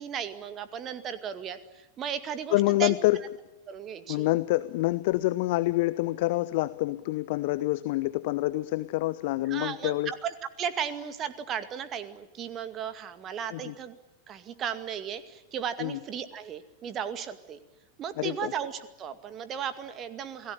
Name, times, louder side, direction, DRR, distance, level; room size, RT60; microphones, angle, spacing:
voice 1, 0.0-3.0 3.7-4.3 9.5-14.0 14.3-17.6 18.0-20.5, right 8 dB, 30° right, 11 dB, 2.2 m, -35 dB
voice 2, 2.5-3.2 4.1-10.1 13.5-13.7 15.8-16.0 18.2-18.5, left 19 dB, 50° left, 15 dB, 1.0 m, -27 dB
28.0 x 19.0 x 10.0 m, 1.0 s
figure-of-eight pair, 90°, 0 cm